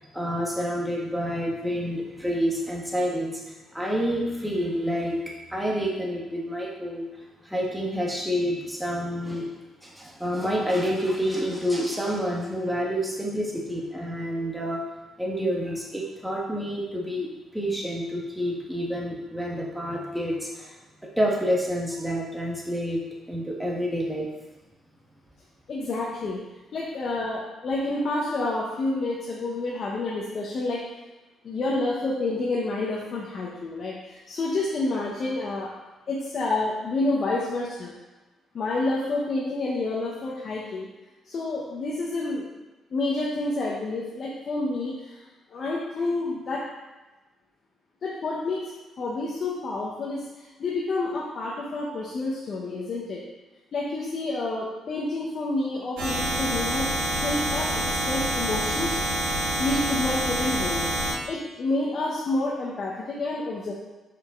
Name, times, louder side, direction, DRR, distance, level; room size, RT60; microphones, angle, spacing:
voice 1, 0.1-3.4 3.7-7.0 7.4-9.5 9.8-14.8 15.2-17.3 17.5-20.7 21.1-23.0 23.3-24.3, equal, 5° right, -3 dB, 1.6 m, -28 dB
voice 2, 25.7-26.4 26.7-30.8 31.4-35.7 36.1-37.9 38.5-40.9 41.3-42.5 42.9-45.1 45.5-46.6 48.0-48.6 49.0-53.2 53.7-56.9 57.2-59.0 59.6-60.9 61.3-63.7, left 2 dB, 50° left, -5 dB, 1.2 m, -29 dB
sound 1, 56.0-61.1, right 1 dB, 85° right, 2.3 m, -27 dB
5.9 x 5.2 x 3.9 m, 1.1 s
cardioid pair, 90°, 0 cm